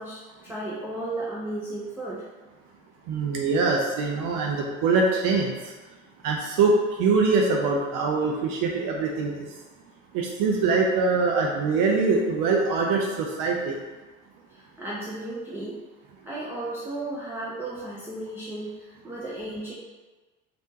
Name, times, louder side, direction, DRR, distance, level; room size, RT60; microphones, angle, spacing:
voice 1, 0.0-2.3 14.5-15.8 16.2-19.7, right 2 dB, 5° right, -7 dB, 0.6 m, -34 dB
voice 2, 3.1-5.7 6.2-9.5 10.1-13.8, right 4 dB, 55° right, 0 dB, 0.5 m, -23 dB
3.4 x 2.5 x 2.7 m, 1.3 s
hypercardioid pair, 55°, 39 cm